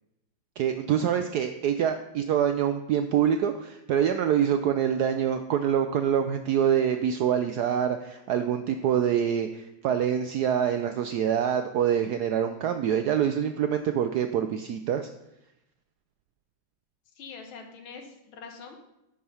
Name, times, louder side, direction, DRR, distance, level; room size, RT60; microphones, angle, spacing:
voice 1, 0.6-15.1, right 9 dB, 80° right, 8 dB, 0.9 m, -25 dB
voice 2, 17.2-18.9, left 5 dB, 85° left, 4 dB, 2.0 m, -44 dB
10.5 x 4.9 x 5.5 m, 0.88 s
omnidirectional pair, 2.2 m